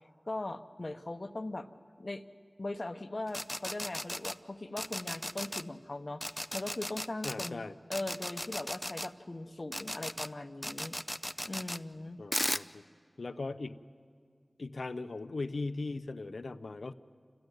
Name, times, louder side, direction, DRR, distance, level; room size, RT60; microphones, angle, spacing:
voice 1, 0.3-1.7 2.0-2.2 2.6-6.2 6.5-7.6 7.9-11.0 11.4-12.2, left 2 dB, 55° left, 9 dB, 0.9 m, -39 dB
sound 1, 3.3-4.3 4.8-5.6 6.2-7.5 7.9-9.1 9.7-10.3 10.6-11.8 12.3-12.6, equal, 10° left, 0.5 m, -36 dB
voice 2, 7.2-7.7 12.2-12.8 13.2-13.8 14.6-16.9, left 3 dB, 85° left, 11 dB, 0.6 m, -38 dB
28.0 x 14.5 x 9.2 m, 2.1 s
wide cardioid pair, 45°, 0 cm